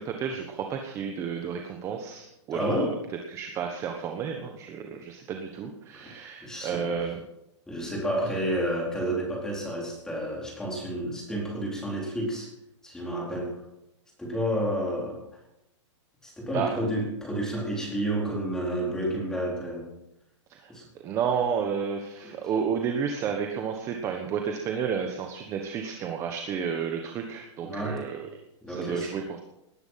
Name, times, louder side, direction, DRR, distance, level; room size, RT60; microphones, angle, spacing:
voice 1, 0.0-2.9 3.3-7.2 16.5-16.7 20.5-20.7 21.0-28.3 28.7-29.4, right 7 dB, 20° right, 4 dB, 1.2 m, -31 dB
voice 2, 2.5-2.9 6.4-6.9 7.7-12.5 12.8-13.6 14.2-15.2 16.2-19.9 20.7-20.9 22.2-22.3 27.6-28.0 28.6-29.1, equal, 5° left, -2 dB, 4.3 m, -30 dB
19.5 x 10.5 x 5.8 m, 0.85 s
hypercardioid pair, 165°, 15 cm